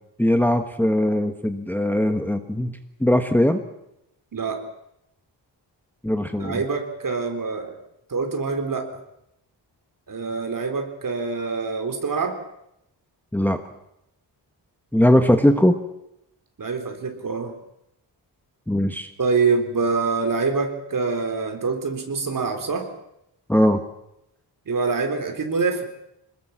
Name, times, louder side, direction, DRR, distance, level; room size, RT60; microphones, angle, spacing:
voice 1, 0.2-3.6 6.0-6.6 13.3-13.6 14.9-15.8 18.7-19.1 23.5-23.8, left 1 dB, 5° left, 6 dB, 1.2 m, -20 dB
voice 2, 4.3-4.6 6.4-7.8 8.1-8.9 10.1-12.4 16.6-17.5 19.2-22.9 24.7-25.9, right 4 dB, 50° right, 4 dB, 4.1 m, -25 dB
26.5 x 20.5 x 7.4 m, 0.83 s
wide cardioid pair, 160°, 43 cm